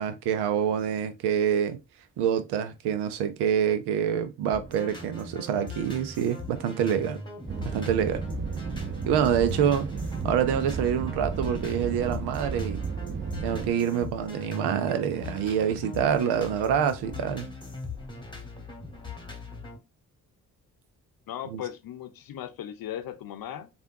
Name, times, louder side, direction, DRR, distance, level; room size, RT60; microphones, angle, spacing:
voice 1, 0.0-1.8 2.2-7.2 7.7-8.2 9.1-9.9 10.2-12.8 13.4-17.5 21.5-21.6, right 8 dB, 75° right, 0.6 m, -26 dB
sound 1, 4.5-19.8, left 3 dB, 10° left, 1.3 m, -40 dB
sound 2, 7.5-13.7, right 5 dB, 30° right, 0.5 m, -33 dB
voice 2, 21.3-23.7, left 10 dB, 60° left, 0.7 m, -37 dB
3.4 x 2.5 x 2.6 m
hypercardioid pair, 40°, 40 cm